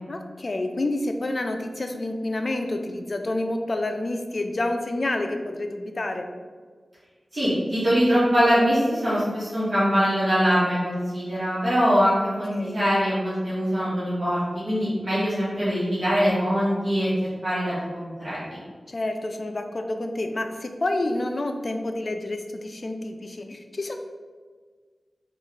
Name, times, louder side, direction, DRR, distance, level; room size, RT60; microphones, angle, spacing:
voice 1, 0.1-6.3 12.5-12.8 18.9-24.0, left 2 dB, 50° left, 5 dB, 0.3 m, -29 dB
voice 2, 7.3-17.1 17.4-18.6, equal, 50° right, -11 dB, 1.2 m, -23 dB
3.5 x 2.4 x 3.1 m, 1.5 s
wide cardioid pair, 65°, 0 cm